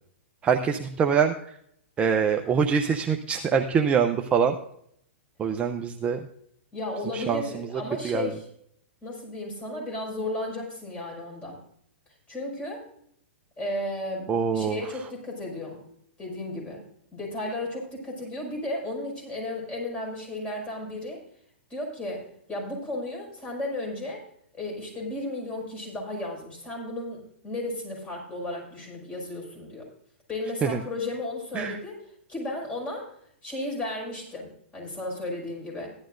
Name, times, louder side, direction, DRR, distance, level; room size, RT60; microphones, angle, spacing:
voice 1, 0.4-1.6 2.0-4.6 5.4-6.2 7.1-8.3 14.3-14.8 30.6-30.8 31.5-31.8, right 6 dB, 20° right, 4 dB, 0.6 m, -24 dB
voice 2, 6.7-8.5 9.0-11.6 12.3-12.8 13.6-15.8 16.2-16.8 17.1-21.2 21.7-24.2 24.5-29.9 30.3-31.9 32.3-33.1 33.4-35.9, left 1 dB, 15° left, -2 dB, 5.6 m, -34 dB
15.5 x 11.5 x 2.6 m, 0.70 s
hypercardioid pair, 130°, 7 cm